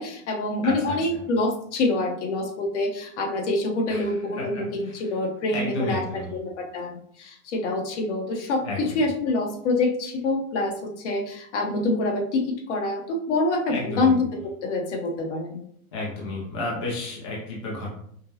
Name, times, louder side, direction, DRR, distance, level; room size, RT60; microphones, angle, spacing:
voice 1, 0.0-14.3 14.6-15.6, left 2 dB, 55° left, 1 dB, 1.0 m, -26 dB
voice 2, 0.6-1.2 3.9-5.0 5.5-6.3 8.6-9.0 13.7-14.1 15.9-17.9, left 2 dB, 25° left, -4 dB, 0.3 m, -32 dB
5.1 x 2.0 x 2.8 m, 0.66 s
supercardioid pair, 155°, 44 cm